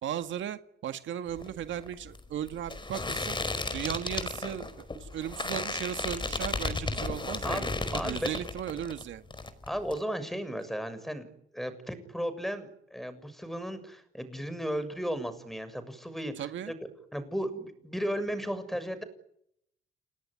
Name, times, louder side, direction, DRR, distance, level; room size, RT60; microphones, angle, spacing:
voice 1, 0.0-3.4 3.7-9.2 16.4-16.7, right 10 dB, 75° right, 9 dB, 1.9 m, -36 dB
sound 1, 1.3-9.0 9.3-10.0, left 3 dB, 25° left, 5.1 m, -34 dB
voice 2, 7.4-8.3 9.7-16.3 16.7-16.8 17.1-19.0, equal, ahead, 13 dB, 6.9 m, -35 dB
29.5 x 19.5 x 9.9 m, 0.72 s
cardioid pair, 90°, 20 cm